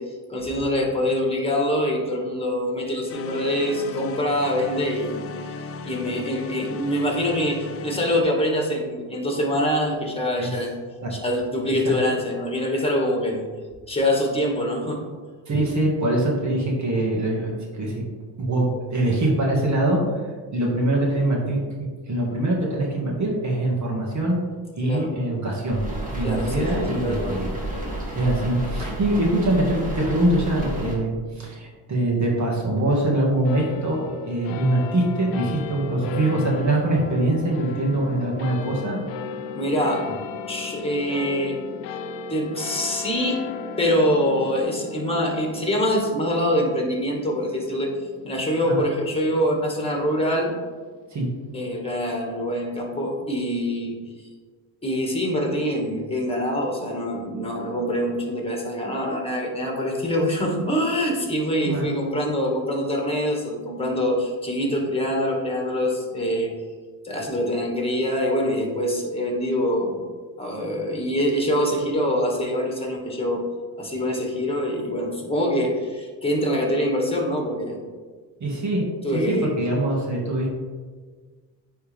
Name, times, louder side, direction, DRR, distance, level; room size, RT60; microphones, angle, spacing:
voice 1, 0.0-5.6 5.8-10.7 11.1-13.4 13.9-15.0 24.8-25.1 26.2-27.3 39.5-40.1 40.5-41.6 42.3-43.4 43.8-47.9 48.2-50.6 51.5-54.0 54.8-66.5 67.0-70.0 70.4-73.4 73.8-77.8 79.0-79.5, equal, 15° left, 0 dB, 1.9 m, -24 dB
sound 1, 3.1-8.2, left 4 dB, 30° left, 0.5 m, -36 dB
voice 2, 15.5-18.1 18.4-20.0 20.5-21.6 22.1-24.4 24.8-25.8 26.2-27.5 28.1-39.0 48.6-48.8 51.1-51.3 61.6-61.9 78.4-78.8 79.1-80.5, right 1 dB, 40° right, -3 dB, 1.9 m, -23 dB
sound 2, 25.6-31.0, right 1 dB, 20° right, 1.9 m, -31 dB
sound 3, 33.4-50.2, left 5 dB, 80° left, 0.6 m, -36 dB
9.3 x 3.6 x 3.5 m, 1.5 s
supercardioid pair, 80°, 44 cm